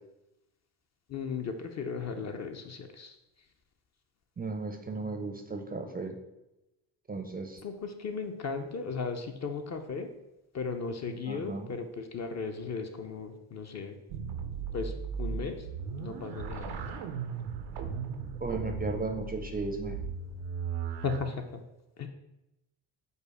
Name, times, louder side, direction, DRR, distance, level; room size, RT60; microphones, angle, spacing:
voice 1, 1.1-3.1 7.6-10.1 10.5-14.0 14.7-14.9 15.2-15.6 15.9-16.9 21.0-21.6 22.0-22.1, left 5 dB, 35° left, 5 dB, 0.5 m, -36 dB
voice 2, 4.4-6.2 7.1-7.6 11.2-11.7 18.4-20.1, right 3 dB, 20° right, 4 dB, 0.4 m, -35 dB
sound 1, 14.1-21.2, right 6 dB, 85° right, 0.6 m, -37 dB
5.3 x 2.1 x 4.7 m, 0.94 s
supercardioid pair, 60°, 49 cm